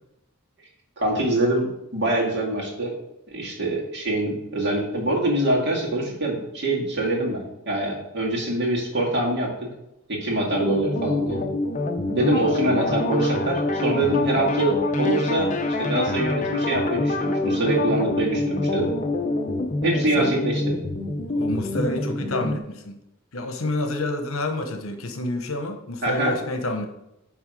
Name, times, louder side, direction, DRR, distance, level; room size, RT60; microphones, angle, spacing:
voice 1, 1.0-2.9 3.3-9.5 10.1-11.4 12.1-15.5 15.8-18.9 19.8-20.8 26.0-26.3, right 1 dB, 55° right, -2 dB, 2.0 m, -24 dB
sound 1, 10.5-22.6, left 2 dB, 35° left, 0.7 m, -26 dB
voice 2, 21.2-23.0 23.3-26.9, left 1 dB, 70° left, 6 dB, 1.0 m, -28 dB
8.8 x 3.5 x 4.9 m, 0.88 s
head